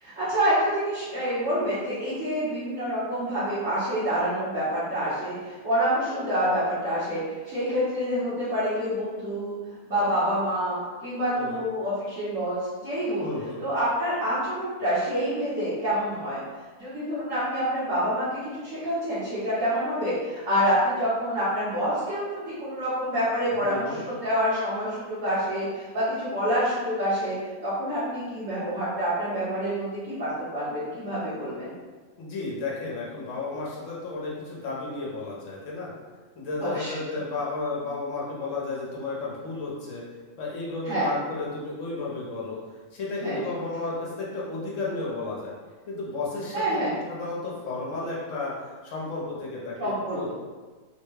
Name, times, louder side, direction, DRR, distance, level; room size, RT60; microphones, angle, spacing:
voice 1, 0.0-9.5 9.8-10.7 11.0-13.2 13.6-16.4 16.8-18.3 18.5-27.3 27.6-31.7 36.6-36.9 40.8-41.1 43.2-43.3 46.5-46.9 49.8-50.3, equal, 65° right, -13 dB, 1.5 m, -27 dB
voice 2, 13.2-13.6 23.6-24.1 32.2-35.9 36.4-40.0 40.3-42.6 42.9-45.5 45.9-50.3, left 3 dB, 65° left, -5 dB, 1.2 m, -33 dB
3.4 x 2.2 x 3.2 m, 1.4 s
omnidirectional pair, 1.5 m